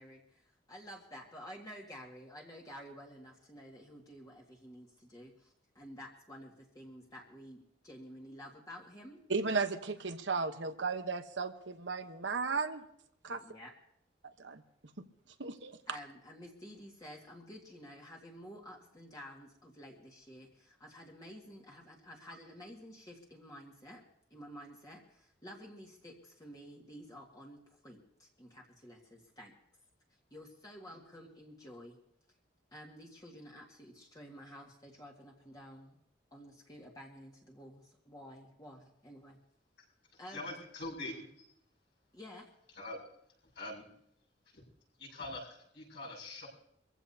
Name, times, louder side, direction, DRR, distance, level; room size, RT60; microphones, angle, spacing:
voice 1, 0.0-9.2 13.3-13.7 15.4-15.5 15.9-24.0 24.3-29.5 30.3-32.0 32.7-36.0 36.3-39.4 40.2-40.5 42.1-42.5, equal, 20° left, -2 dB, 2.0 m, -51 dB
voice 2, 9.3-12.8 13.2-13.4 14.4-14.6 15.4-15.8, right 4 dB, 75° right, 8 dB, 1.1 m, -35 dB
voice 3, 40.1-41.3 42.7-43.0 43.4-43.9 44.5-44.7 45.0-46.5, left 2 dB, 65° left, -3 dB, 7.0 m, -44 dB
24.0 x 15.5 x 2.8 m, 0.73 s
head